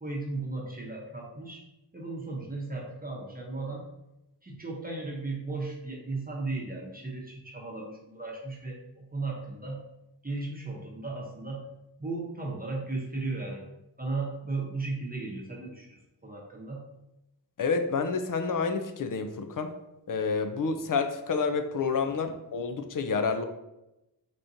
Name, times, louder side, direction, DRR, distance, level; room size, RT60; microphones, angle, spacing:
voice 1, 0.0-1.6 1.9-3.9 4.4-9.8 10.2-11.6 12.0-13.6 14.0-16.8, right 3 dB, 20° right, -2 dB, 0.9 m, -36 dB
voice 2, 17.6-19.7 20.1-23.4, left 5 dB, 50° left, 7 dB, 0.5 m, -29 dB
4.2 x 3.6 x 2.6 m, 0.92 s
cardioid pair, 50°, 42 cm